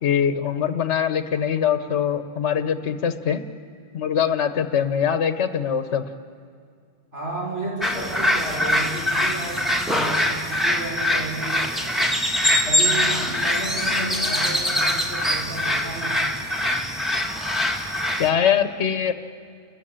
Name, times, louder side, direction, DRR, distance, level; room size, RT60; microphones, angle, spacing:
voice 1, 0.0-3.4 3.9-6.0 18.2-19.1, left 8 dB, 75° left, 9 dB, 1.2 m, -22 dB
voice 2, 7.1-12.2 12.6-16.4, right 2 dB, 75° right, -6 dB, 5.5 m, -33 dB
sound 1, 7.8-18.3, left 1 dB, ahead, 1.8 m, -23 dB
29.0 x 14.5 x 8.8 m, 2.3 s
omnidirectional pair, 1.2 m